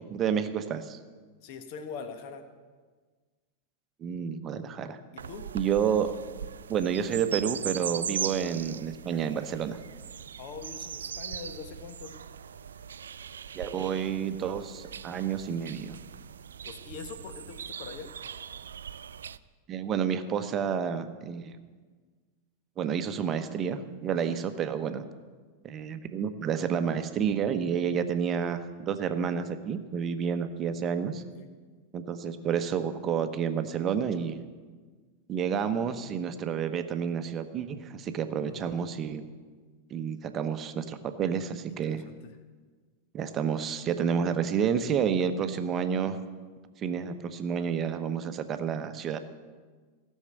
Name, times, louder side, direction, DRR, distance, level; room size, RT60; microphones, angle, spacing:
voice 1, 0.1-1.0 4.0-5.0 5.5-6.1 6.7-9.8 13.5-16.0 19.7-21.6 22.8-25.1 25.6-31.2 31.9-34.4 35.3-39.2 39.9-42.0 43.1-46.2 46.8-49.2, right 7 dB, 30° right, 9 dB, 0.9 m, -30 dB
voice 2, 1.4-2.5 5.1-5.5 10.4-12.2 16.6-18.1 24.1-24.4 31.1-31.5 38.4-39.1 41.7-42.4, left 5 dB, 45° left, 8 dB, 1.2 m, -43 dB
sound 1, 5.2-19.4, right 8 dB, 65° right, 0.3 m, -40 dB
16.5 x 6.5 x 8.0 m, 1.4 s
figure-of-eight pair, 90°, 0 cm